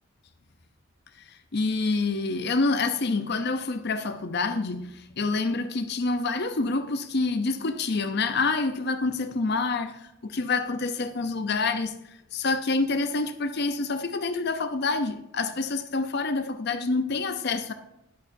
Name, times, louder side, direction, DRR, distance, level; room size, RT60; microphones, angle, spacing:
voice 1, 1.5-11.9 12.3-17.7, left 3 dB, 50° left, 0.6 m, -27 dB
12.5 x 10.0 x 2.7 m
head